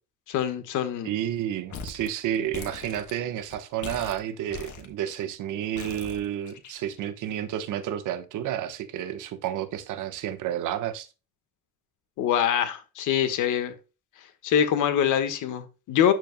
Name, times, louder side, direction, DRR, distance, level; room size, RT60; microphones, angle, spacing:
voice 1, 0.3-1.1 12.2-13.7 14.4-16.1, left 9 dB, 90° left, 1.4 m, -24 dB
voice 2, 1.0-11.1, right 10 dB, 85° right, 1.2 m, -31 dB
sound 1, 1.7-2.1 2.3-3.6 3.8-5.2 5.8-7.0, left 5 dB, 70° left, 1.6 m, -40 dB
12.0 x 4.5 x 2.2 m
cardioid pair, 90°, 30 cm